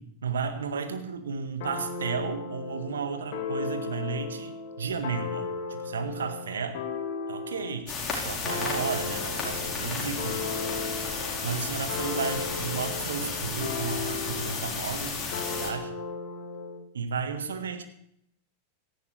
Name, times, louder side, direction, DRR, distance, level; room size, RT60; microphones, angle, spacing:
voice 1, 0.0-6.8 7.3-10.5 11.2-15.9 16.9-17.8, right 5 dB, 65° right, 7 dB, 1.7 m, -33 dB
sound 1, 1.6-7.8 8.5-14.7 15.3-16.8, left 4 dB, 50° left, 2.2 m, -36 dB
sound 2, 7.9-15.7, left 4 dB, 20° left, 4.4 m, -33 dB
17.5 x 14.5 x 3.4 m, 0.73 s
figure-of-eight pair, 90°, 0 cm